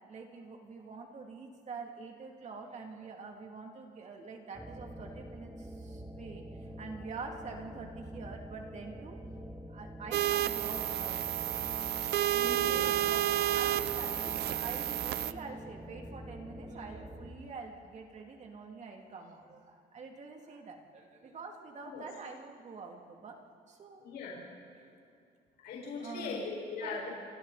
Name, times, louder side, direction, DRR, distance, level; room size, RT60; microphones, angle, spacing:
voice 1, 0.1-9.2 9.7-11.6 12.0-12.1 12.8-23.4 23.7-24.1 24.8-25.1 26.0-26.5 26.8-27.1, right 4 dB, 45° right, 2 dB, 2.9 m, -46 dB
sound 1, 4.5-17.3, equal, 10° right, 2.5 m, -46 dB
Hard Drive Electromagnetic Sounds, 10.1-15.3, right 13 dB, 75° right, 0.7 m, -31 dB
voice 2, 12.3-12.8 21.9-22.1 24.0-24.4 25.6-27.1, left 4 dB, 70° left, -4 dB, 5.8 m, -39 dB
28.5 x 26.0 x 4.3 m, 2.4 s
cardioid pair, 110°, 17 cm